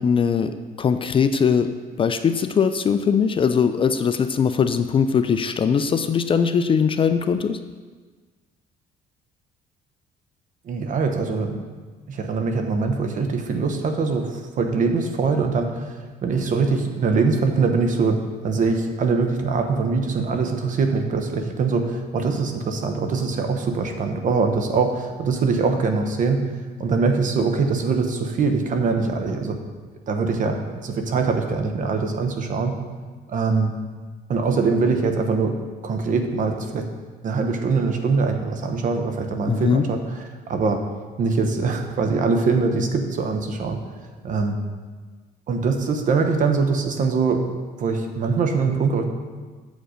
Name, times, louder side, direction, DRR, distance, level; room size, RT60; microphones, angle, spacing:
voice 1, 0.0-1.7 2.0-7.6 39.5-39.9, left 6 dB, 30° left, 10 dB, 0.4 m, -21 dB
voice 2, 10.6-11.6 12.1-26.5 26.8-29.6 30.1-32.7 33.3-33.7 34.3-35.6 35.8-36.9 37.2-40.8 41.2-43.8 44.2-44.6 45.5-47.4 47.8-49.0, right 4 dB, 50° right, 5 dB, 1.0 m, -23 dB
7.7 x 5.2 x 5.0 m, 1.4 s
cardioid pair, 110°, 17 cm